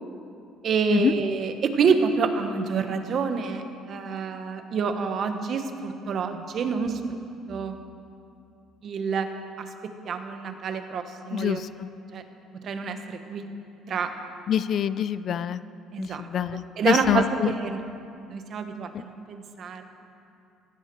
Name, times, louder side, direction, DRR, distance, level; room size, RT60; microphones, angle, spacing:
voice 1, 0.6-7.2 7.5-7.8 8.8-9.3 9.6-11.6 12.1-12.2 12.6-13.5 13.9-14.1 15.9-16.3 16.5-17.8 18.3-19.8, right 5 dB, 45° right, 7 dB, 1.3 m, -27 dB
voice 2, 14.5-15.6 16.0-17.5, left 9 dB, 50° left, 15 dB, 0.4 m, -25 dB
16.5 x 16.0 x 4.7 m, 2.6 s
cardioid pair, 120°, 0 cm